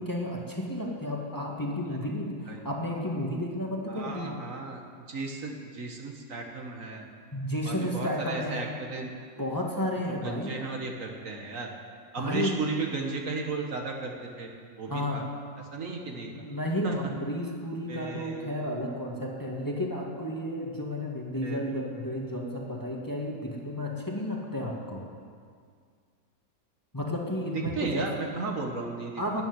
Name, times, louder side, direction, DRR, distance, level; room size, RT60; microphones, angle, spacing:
voice 1, 0.0-4.3 7.3-8.7 9.4-10.6 12.2-12.6 14.9-15.3 16.1-25.0 26.9-28.1 29.2-29.4, left 1 dB, 15° left, -2 dB, 1.8 m, -32 dB
voice 2, 3.9-7.1 7.7-9.1 10.2-11.7 12.1-14.5 14.8-15.2 15.7-16.3 16.8-17.0 17.9-18.7 21.4-21.7 27.8-29.2, right 3 dB, 60° right, 2 dB, 1.8 m, -35 dB
13.0 x 9.1 x 9.5 m, 2.1 s
omnidirectional pair, 1.5 m